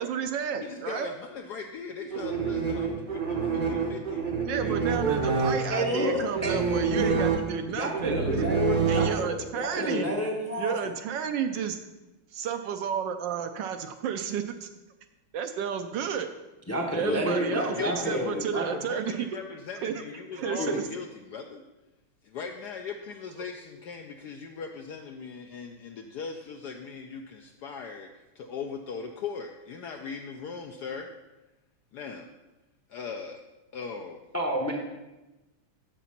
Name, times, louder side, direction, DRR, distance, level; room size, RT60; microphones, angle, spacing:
voice 1, 0.0-1.1 4.5-8.5 8.9-10.1 10.6-11.8 12.3-14.7 15.3-16.3 16.9-19.3 19.8-19.9 20.3-20.8 23.4-23.5, right 8 dB, 75° right, 7 dB, 1.1 m, -31 dB
voice 2, 0.6-4.3 4.6-4.7 17.0-21.6 22.2-31.1 31.9-32.3 32.9-33.4 33.7-34.2, left 5 dB, 75° left, 4 dB, 0.9 m, -39 dB
sound 1, 2.1-9.6, right 5 dB, 40° right, 0.7 m, -28 dB
voice 3, 5.7-6.6 6.9-7.3 7.8-10.7 16.7-18.6 20.6-20.8 34.3-34.7, equal, 15° left, 1 dB, 0.5 m, -29 dB
7.3 x 6.9 x 5.8 m, 1.1 s
omnidirectional pair, 2.3 m